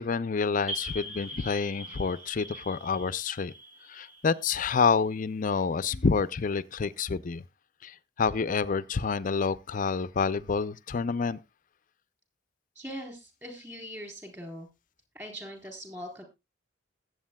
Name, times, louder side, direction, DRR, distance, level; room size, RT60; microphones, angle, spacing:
voice 1, 0.0-3.5 3.9-7.4 7.8-11.4, left 5 dB, 45° left, 0.5 m, -28 dB
sound 1, 0.7-5.1, equal, 40° right, 5.0 m, -41 dB
voice 2, 12.8-14.7 15.1-16.2, equal, 15° right, 3.7 m, -41 dB
20.5 x 8.0 x 2.2 m
head